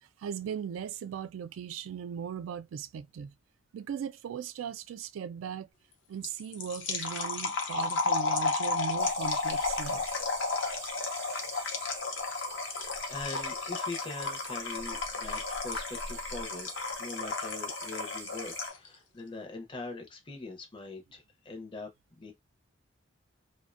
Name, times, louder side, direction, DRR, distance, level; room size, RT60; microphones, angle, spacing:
voice 1, 0.2-3.3 3.7-5.7 6.1-10.2, right 7 dB, 90° right, 0.3 m, -38 dB
sound 1, 6.2-18.9, left 4 dB, 65° left, 0.6 m, -33 dB
sound 2, 9.0-18.7, right 4 dB, 30° right, 0.5 m, -45 dB
voice 2, 12.4-21.9 22.2-22.3, left 3 dB, 25° left, 0.5 m, -42 dB
2.4 x 2.1 x 2.4 m
head